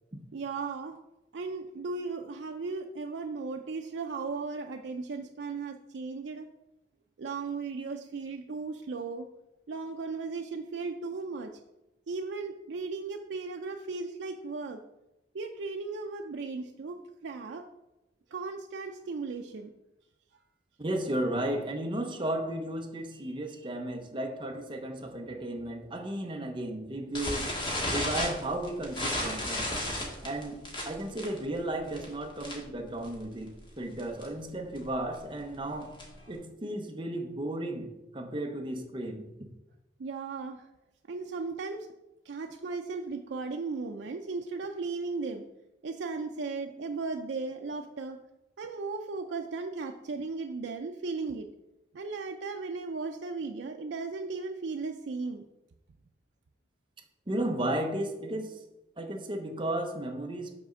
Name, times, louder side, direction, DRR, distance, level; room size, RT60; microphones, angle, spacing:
voice 1, 0.3-1.0 1.3-6.5 7.2-9.3 9.7-11.5 12.1-14.8 15.3-17.6 18.3-19.7 40.0-40.7 41.1-41.9 42.3-45.4 45.8-48.2 48.6-51.5 51.9-55.4, right 4 dB, 75° right, 3 dB, 0.4 m, -36 dB
voice 2, 20.8-27.5 27.9-29.7 30.2-30.6 30.9-35.9 36.3-39.3 57.3-58.6 59.0-60.5, right 1 dB, 25° right, 4 dB, 0.8 m, -34 dB
sound 1, 27.1-32.8 33.0-33.3 33.6-33.7 34.0-34.3 34.8-36.3, left 1 dB, 25° left, 1.6 m, -33 dB
6.0 x 4.2 x 6.2 m, 0.94 s
head